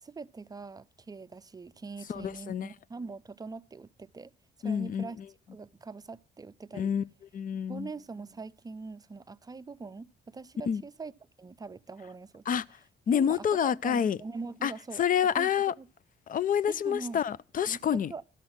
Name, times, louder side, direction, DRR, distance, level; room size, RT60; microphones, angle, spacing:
voice 1, 0.0-4.3 4.6-5.2 5.5-6.9 7.7-11.1 11.4-12.5 13.1-15.0 15.4-15.5 15.8-15.9 16.7-17.2 17.7-17.8 18.1-18.2, right 4 dB, 20° right, 0.5 m, -42 dB
voice 2, 2.1-2.7 4.6-5.3 6.7-7.0 7.3-7.9 10.7-10.8 12.5-12.6 13.1-14.2 14.6-15.7 16.3-18.1, left 8 dB, 45° left, 0.5 m, -28 dB
12.5 x 6.2 x 7.2 m
cardioid pair, 90°, 20 cm